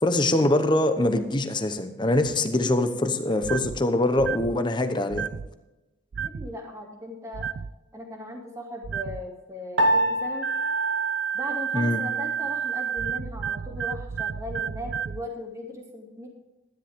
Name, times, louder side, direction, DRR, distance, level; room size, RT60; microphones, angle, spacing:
voice 1, 0.0-5.3 11.7-12.0, left 1 dB, 25° left, 8 dB, 0.9 m, -23 dB
sound 1, 3.4-3.8 4.2-4.5 5.1-5.5 6.1-6.5 7.3-7.7 8.8-9.2 10.4-15.2, right 8 dB, 65° right, 0.4 m, -30 dB
voice 2, 6.2-7.5 7.9-10.5 11.3-16.3, left 1 dB, 15° right, 0 dB, 2.4 m, -38 dB
Piano, 9.8-12.3, right 1 dB, 80° right, 2.0 m, -27 dB
13.0 x 10.5 x 3.6 m, 1.0 s
head